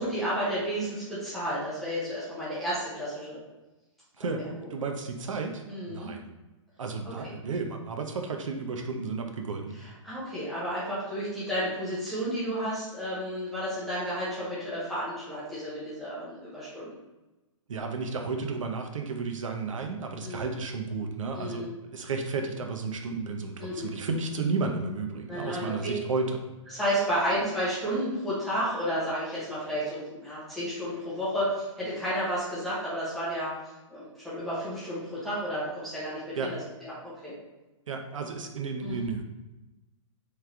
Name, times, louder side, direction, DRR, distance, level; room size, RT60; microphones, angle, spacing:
voice 1, 0.0-3.4 4.2-4.5 5.7-6.1 7.0-7.3 10.0-16.9 20.2-20.4 21.4-21.7 23.6-23.9 25.3-25.9 26.7-33.5 33.9-37.3 38.8-39.1, equal, ahead, -12 dB, 0.6 m, -32 dB
voice 2, 4.7-6.3 6.8-9.7 17.7-26.4 36.4-36.5 37.9-39.2, right 4 dB, 75° right, 4 dB, 0.7 m, -32 dB
3.3 x 3.3 x 3.6 m, 1.1 s
hypercardioid pair, 180°, 17 cm